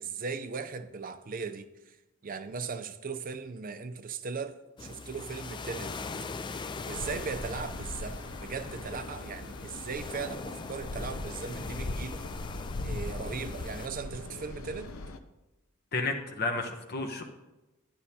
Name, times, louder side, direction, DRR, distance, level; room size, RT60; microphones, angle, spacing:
voice 1, 0.0-2.0 2.2-5.9 6.9-12.2 12.8-14.9, right 5 dB, 40° right, 0.5 m, -38 dB
sound 1, 4.8-13.9, left 4 dB, 20° left, 0.3 m, -41 dB
sound 2, 6.9-15.2, left 2 dB, 80° left, 0.7 m, -40 dB
voice 2, 15.9-17.2, left 3 dB, 50° left, 0.8 m, -31 dB
10.0 x 10.0 x 2.8 m
head